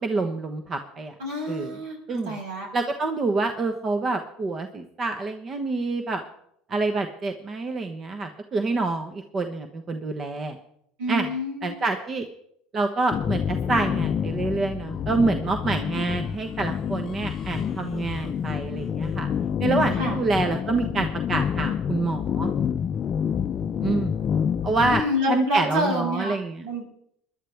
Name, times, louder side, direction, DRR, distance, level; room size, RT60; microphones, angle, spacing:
voice 1, 0.0-1.1 1.5-1.8 2.1-2.4 2.7-6.2 6.7-10.6 11.1-11.3 11.6-12.3 12.7-19.3 19.6-22.5 23.8-24.2 24.6-26.6, right 3 dB, 35° right, 6 dB, 1.1 m, -27 dB
voice 2, 1.2-2.0 2.2-2.7 11.0-11.8 20.0-20.1 24.8-26.3 26.6-26.8, equal, 75° right, -1 dB, 6.2 m, -27 dB
sound 1, 13.1-25.0, left 8 dB, 40° left, 0.5 m, -28 dB
21.0 x 11.5 x 3.5 m, 0.71 s
supercardioid pair, 95°, 0 cm